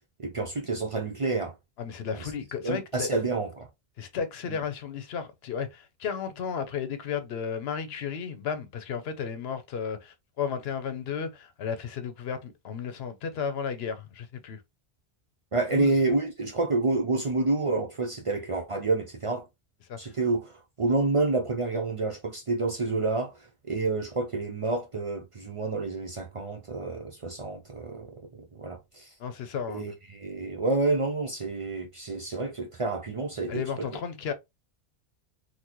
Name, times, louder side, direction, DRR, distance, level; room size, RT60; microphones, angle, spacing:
voice 1, 0.2-1.5 2.6-3.7 15.5-19.4 20.0-23.3 23.7-29.1 29.7-33.6, right 3 dB, 40° right, 0.5 m, -28 dB
voice 2, 1.8-3.1 4.0-14.6 15.7-16.0 19.9-20.1 29.2-29.8 33.5-34.3, left 7 dB, 75° left, 0.9 m, -34 dB
3.9 x 2.2 x 2.9 m
omnidirectional pair, 1.1 m